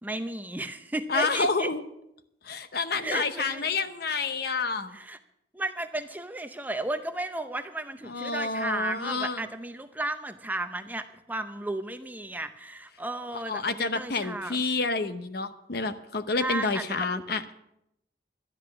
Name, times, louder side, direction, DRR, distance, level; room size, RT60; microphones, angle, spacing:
voice 1, 0.0-1.7 3.0-3.7 4.9-5.2 5.5-14.6 16.4-17.2, right 2 dB, 10° right, 9 dB, 0.6 m, -34 dB
voice 2, 1.1-1.8 2.4-5.0 8.0-9.4 13.5-17.5, left 4 dB, 60° left, 10 dB, 0.8 m, -29 dB
12.5 x 10.5 x 6.0 m, 0.80 s
head